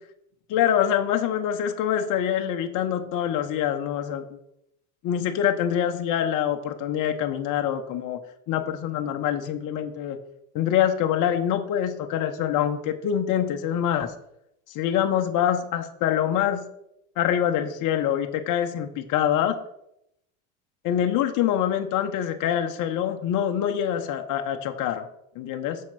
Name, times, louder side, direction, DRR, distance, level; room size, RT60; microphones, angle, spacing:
voice 1, 0.5-4.4 5.0-8.2 8.5-10.2 10.5-14.1 14.7-16.6 17.2-19.6 20.8-25.1 25.4-25.8, left 10 dB, 50° left, 6 dB, 0.9 m, -25 dB
6.5 x 4.4 x 5.7 m, 0.78 s
supercardioid pair, 95°, 40 cm